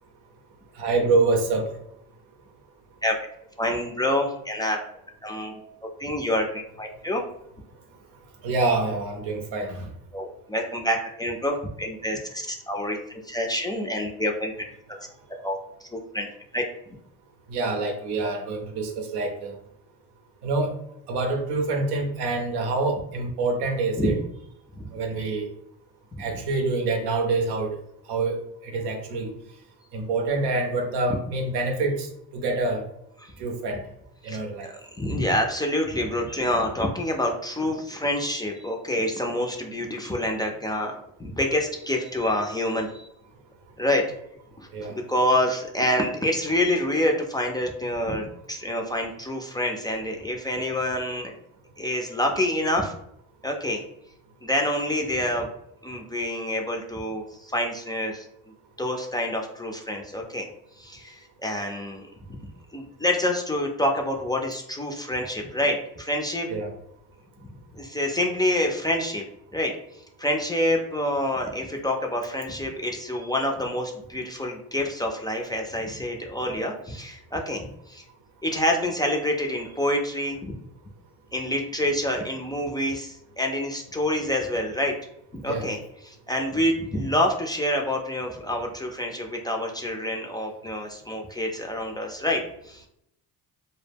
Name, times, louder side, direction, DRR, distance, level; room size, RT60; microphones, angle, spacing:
voice 1, 0.8-1.7 8.4-9.9 17.5-19.6 20.4-20.7 21.1-24.1 24.9-25.5 26.2-27.7 28.1-29.3 29.9-32.1 32.3-32.8 33.4-33.8 34.2-34.7 44.7-44.9 66.5-66.7 85.5-85.7, right 3 dB, 90° right, 3 dB, 0.6 m, -26 dB
voice 2, 3.6-4.8 5.2-5.7 6.0-7.2 10.1-14.5 15.4-16.3 16.5-16.6 24.0-24.1 24.8-24.9 33.2-33.3 34.2-43.1 43.8-44.1 44.6-51.3 51.8-52.9 53.4-53.8 54.4-55.5 55.8-58.3 58.8-60.5 60.8-62.1 62.7-66.5 67.7-69.2 69.5-69.7 70.2-78.0 78.4-80.4 81.3-84.9 85.3-92.9, left 1 dB, 10° left, 1 dB, 0.3 m, -27 dB
2.1 x 2.0 x 3.3 m, 0.76 s
supercardioid pair, 75°, 38 cm